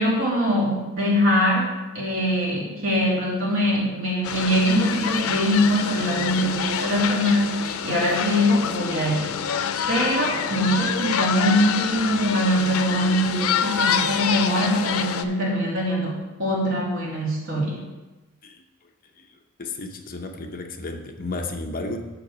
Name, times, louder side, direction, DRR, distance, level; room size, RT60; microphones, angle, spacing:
voice 1, 0.0-9.5 9.9-17.8, equal, 65° right, -4 dB, 2.6 m, -23 dB
sound 1, 4.2-15.2, left 7 dB, 90° left, 0.5 m, -27 dB
voice 2, 19.2-22.1, left 2 dB, 45° left, 4 dB, 0.7 m, -33 dB
6.9 x 6.8 x 5.0 m, 1.1 s
head